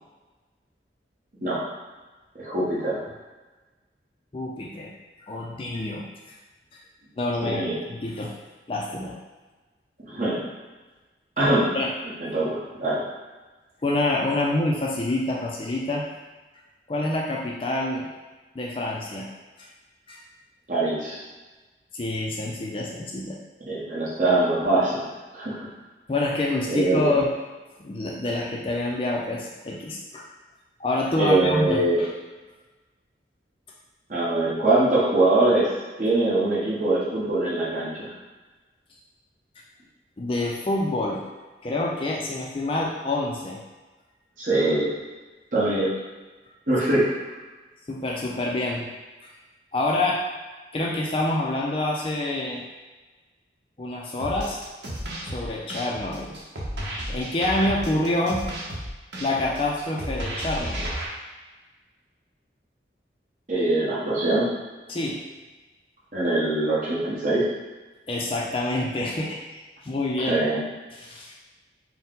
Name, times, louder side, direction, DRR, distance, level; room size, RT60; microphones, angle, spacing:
voice 1, 2.4-3.0 7.4-7.8 10.0-10.4 11.4-11.7 12.2-13.0 20.7-21.2 23.7-25.1 25.3-25.6 26.7-27.1 31.2-32.0 34.1-38.1 44.4-44.9 45.5-45.9 46.7-47.1 63.5-64.5 66.1-67.4 70.3-70.6, right 2 dB, 45° right, -7 dB, 1.2 m, -23 dB
voice 2, 4.3-4.9 5.2-6.3 7.2-7.6 7.9-8.3 8.7-9.2 11.7-11.9 13.8-16.1 16.9-18.1 18.5-19.3 19.6-19.7 20.1-20.2 21.9-23.4 26.1-27.3 27.8-30.3 30.8-32.1 40.2-41.2 41.6-43.6 47.9-48.9 49.2-49.3 49.7-50.2 50.7-52.6 53.8-54.6 55.2-56.4 57.1-58.4 59.2-60.9 64.9-65.2 68.1-70.4 70.9-71.3, left 2 dB, 30° left, -2 dB, 0.4 m, -27 dB
sound 1, 54.2-61.0, right 1 dB, 80° right, 0.8 m, -33 dB
4.3 x 2.1 x 3.7 m, 1.2 s
head